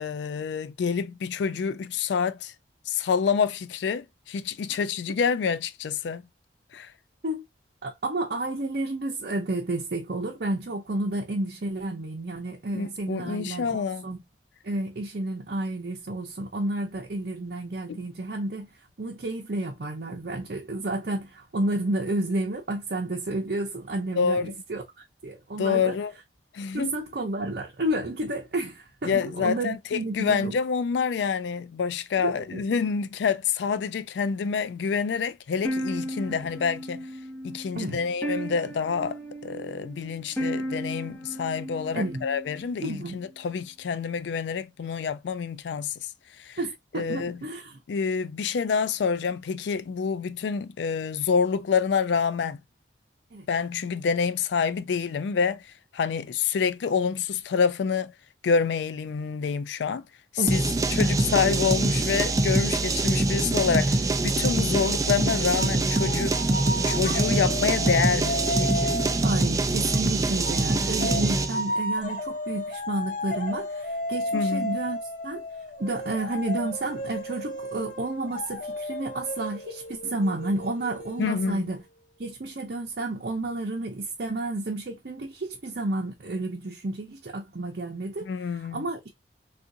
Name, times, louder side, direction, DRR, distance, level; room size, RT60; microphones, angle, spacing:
voice 1, 0.0-2.5 2.9-6.2 6.7-6.9 12.7-14.1 17.9-18.0 24.1-24.5 25.6-26.1 26.5-26.9 29.0-37.1 37.4-46.0 46.4-46.6 46.9-47.4 47.9-52.6 53.5-58.1 58.4-60.0 60.3-60.6 60.9-66.4 66.9-69.0 74.3-74.7 81.2-81.6 88.3-88.9, left 6 dB, 80° left, 0.3 m, -27 dB
voice 2, 7.8-14.2 14.6-18.7 19.0-24.8 25.2-26.0 26.7-30.5 32.2-32.6 37.8-38.0 41.9-42.2 42.8-43.2 46.6-47.8 53.3-53.5 60.4-60.6 69.2-75.0 75.2-75.4 75.8-81.8 82.2-88.3 88.7-89.1, right 2 dB, 60° right, 0.7 m, -31 dB
sound 1, 35.6-42.8, equal, 10° left, 0.9 m, -35 dB
sound 2, 60.5-71.6, right 2 dB, 20° right, 0.3 m, -24 dB
sound 3, 65.6-69.9 70.4-81.8, left 1 dB, 45° left, 0.7 m, -33 dB
3.6 x 2.5 x 2.6 m
head